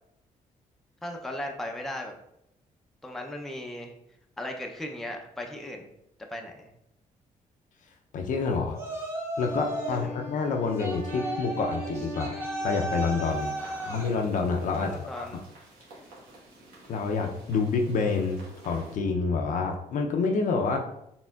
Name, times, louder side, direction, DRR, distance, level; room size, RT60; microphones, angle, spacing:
voice 1, 1.0-2.1 3.0-3.9 4.4-5.9 6.3-6.7 10.0-10.2 13.6-14.0 14.8-15.4, left 1 dB, ahead, 2 dB, 0.5 m, -37 dB
voice 2, 8.1-8.8 9.4-13.5 13.9-15.4 16.9-20.8, left 4 dB, 65° left, 3 dB, 0.5 m, -28 dB
Yell, 8.7-10.1 10.8-14.2, right 1 dB, 15° right, 1.1 m, -34 dB
Wind instrument woodwind instrument, 9.4-13.7, left 1 dB, 55° right, 1.2 m, -40 dB
sound 1, 13.2-19.0, right 2 dB, 90° right, 1.4 m, -51 dB
4.2 x 3.6 x 2.3 m, 0.79 s
cardioid pair, 90°, 14 cm